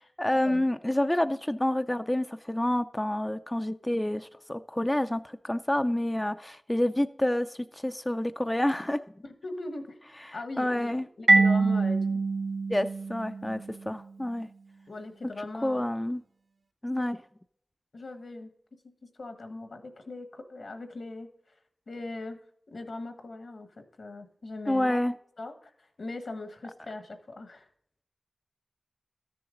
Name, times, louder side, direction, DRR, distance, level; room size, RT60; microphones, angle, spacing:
voice 1, 0.2-9.0 10.3-11.1 12.7-14.5 15.6-16.2 16.8-17.2 24.7-25.1, left 1 dB, 15° left, 0.4 m, -28 dB
voice 2, 9.2-10.0 10.3-12.2 14.9-15.9 17.9-18.5 19.2-21.3 21.9-22.4 22.7-23.7 24.0-25.0 25.4-27.7, left 2 dB, 80° left, 1.3 m, -40 dB
Marimba xylophone, 11.3-13.9, right 3 dB, 70° right, 0.7 m, -24 dB
13.5 x 7.0 x 3.8 m
wide cardioid pair, 65°, 0 cm